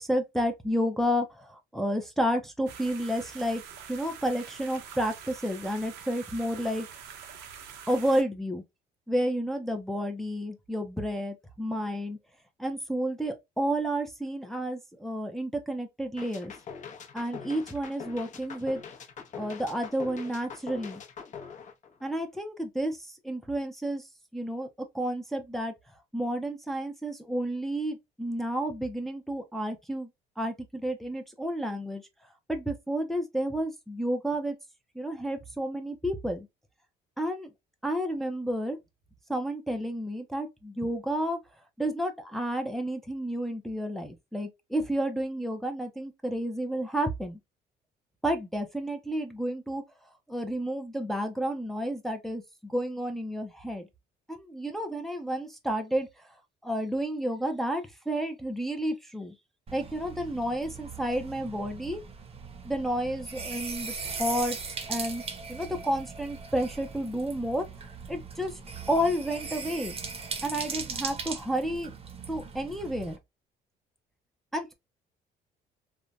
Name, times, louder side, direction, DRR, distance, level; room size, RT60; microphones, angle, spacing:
voice 1, 0.0-3.6 3.9-6.9 7.9-8.6 9.1-12.2 12.6-16.5 17.1-18.8 19.4-21.0 22.0-24.1 24.3-24.7 24.9-25.7 26.1-30.1 30.4-32.0 32.5-34.6 35.0-36.5 37.2-37.5 37.8-38.8 39.3-41.4 41.8-47.4 48.2-49.8 50.3-53.9 54.3-56.3 56.6-59.3 59.7-62.0 62.6-63.9 64.2-64.6 64.9-65.2 65.5-67.7 68.1-68.6 68.9-69.9 70.4-71.9 72.3-73.2 74.5-74.7, equal, ahead, 0.5 m, -31 dB
sound 1, 2.7-8.2, right 7 dB, 85° right, 0.7 m, -45 dB
sound 2, 16.2-22.4, left 6 dB, 45° left, 0.7 m, -43 dB
sound 3, 59.7-73.2, right 5 dB, 35° right, 0.7 m, -39 dB
3.2 x 2.1 x 2.4 m
cardioid pair, 110°, 17 cm